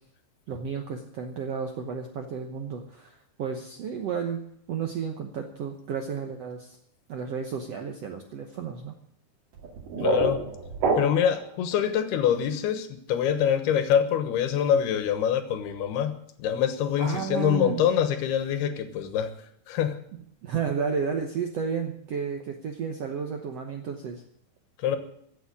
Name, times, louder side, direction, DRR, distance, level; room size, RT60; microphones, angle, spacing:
voice 1, 0.5-4.4 4.7-6.8 7.1-8.9 17.0-17.8 20.4-24.2, right 6 dB, 80° right, 4 dB, 1.4 m, -32 dB
sound 1, 9.5-11.5, right 3 dB, 60° right, 3.6 m, -27 dB
voice 2, 10.0-10.4 11.0-19.3 19.7-20.0 24.8-25.0, left 9 dB, 85° left, 10 dB, 3.3 m, -25 dB
15.5 x 7.2 x 9.9 m, 0.69 s
omnidirectional pair, 4.5 m